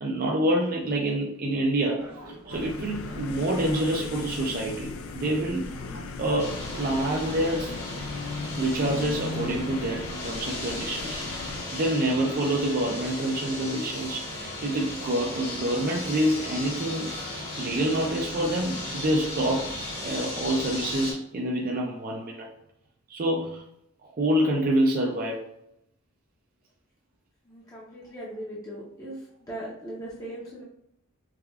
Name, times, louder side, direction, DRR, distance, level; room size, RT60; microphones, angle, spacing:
voice 1, 0.0-5.7 6.2-7.8 8.6-17.3 17.6-22.5 23.1-23.6 24.0-25.5, right 1 dB, 45° right, -1 dB, 0.4 m, -27 dB
sound 1, 2.0-8.0, right 1 dB, 80° right, 1.1 m, -44 dB
sound 2, 2.5-11.6, left 4 dB, 70° left, 0.3 m, -38 dB
sound 3, 6.4-21.1, left 2 dB, 50° left, 1.1 m, -36 dB
voice 2, 27.5-29.2 29.5-30.6, right 1 dB, 15° left, -5 dB, 0.6 m, -39 dB
4.9 x 2.3 x 2.3 m, 0.73 s
head